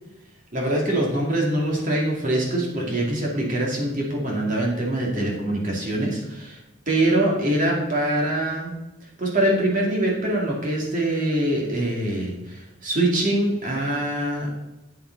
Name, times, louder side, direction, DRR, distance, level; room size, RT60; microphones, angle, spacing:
voice 1, 0.5-6.6 6.9-8.7 9.2-14.5, right 1 dB, 45° right, -2 dB, 2.5 m, -24 dB
8.8 x 7.4 x 4.0 m, 0.97 s
head